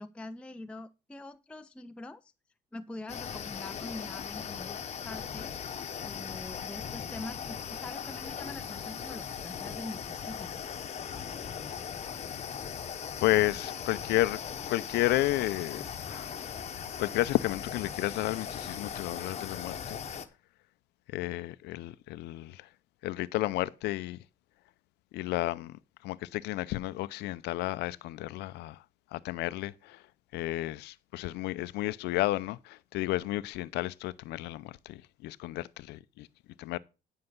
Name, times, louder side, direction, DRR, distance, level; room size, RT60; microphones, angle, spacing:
voice 1, 0.0-2.3 2.7-4.8 5.0-5.6 6.0-10.5, left 2 dB, 5° left, 0.5 m, -44 dB
sound 1, 3.1-20.3, left 7 dB, 40° left, 1.0 m, -39 dB
voice 2, 13.2-14.4 14.7-15.8 16.1-16.4 17.0-20.0 21.1-22.7 23.0-24.2 25.1-28.8 29.1-30.0 30.3-36.3 36.6-36.8, left 17 dB, 85° left, 0.6 m, -32 dB
9.9 x 5.6 x 5.3 m
cardioid pair, 110°, 17 cm